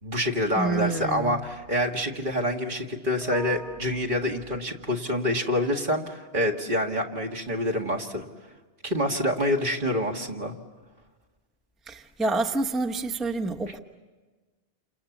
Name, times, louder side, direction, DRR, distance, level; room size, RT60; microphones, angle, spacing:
voice 1, 0.0-8.2 8.8-10.5, left 1 dB, 45° right, 2.2 m, -27 dB
voice 2, 0.6-1.4 3.2-3.8 11.9-13.8, right 3 dB, ahead, 1.0 m, -28 dB
29.0 x 28.0 x 7.2 m
omnidirectional pair, 1.2 m